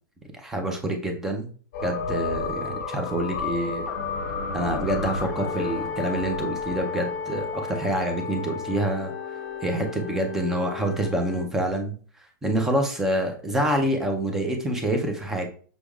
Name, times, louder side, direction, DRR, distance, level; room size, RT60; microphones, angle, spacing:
voice 1, 0.3-1.5 1.8-3.9 4.5-9.1 9.6-11.9 12.4-15.5, right 1 dB, 5° right, 3 dB, 0.4 m, -26 dB
sound 1, 1.7-11.4, left 5 dB, 30° left, 1.0 m, -32 dB
6.2 x 3.3 x 2.3 m, 0.42 s
supercardioid pair, 175°, 11 cm